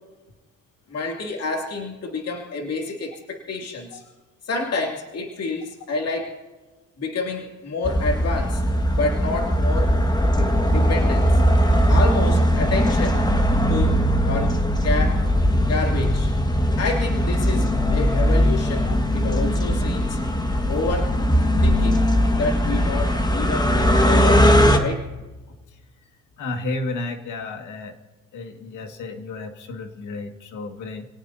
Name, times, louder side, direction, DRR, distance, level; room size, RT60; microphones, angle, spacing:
voice 1, 0.9-4.0 4.4-6.3 7.0-8.6 8.9-10.0 10.3-11.4 11.9-13.2 13.7-14.0 14.2-15.2 15.6-16.3 16.8-20.2 20.7-21.2 21.6-22.0 22.3-25.0, left 3 dB, 55° left, 1 dB, 2.7 m, -28 dB
sound 1, 7.8-24.8, equal, 15° left, 1.7 m, -19 dB
voice 2, 26.4-28.0 28.3-31.1, left 2 dB, 80° left, 5 dB, 2.0 m, -32 dB
28.0 x 18.5 x 2.8 m, 1.2 s
cardioid pair, 90°, 30 cm